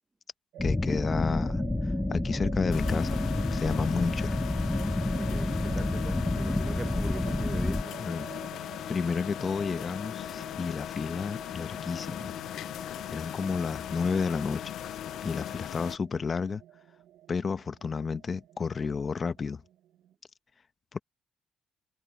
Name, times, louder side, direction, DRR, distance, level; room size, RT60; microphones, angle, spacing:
sound 1, 0.5-20.1, right 12 dB, 85° right, 0.8 m, -48 dB
voice 1, 0.6-1.6 2.1-3.2 3.5-4.3 8.0-8.3 8.9-12.3 13.1-14.6 15.2-16.6 17.3-19.6 20.9-21.0, left 5 dB, 40° left, 1.0 m, -31 dB
sound 2, 0.6-7.8, left 2 dB, 15° left, 0.8 m, -29 dB
sound 3, 2.7-16.0, left 11 dB, 75° left, 0.6 m, -38 dB
voice 2, 5.2-8.0, right 2 dB, 20° right, 1.2 m, -41 dB
cardioid pair, 90°, 0 cm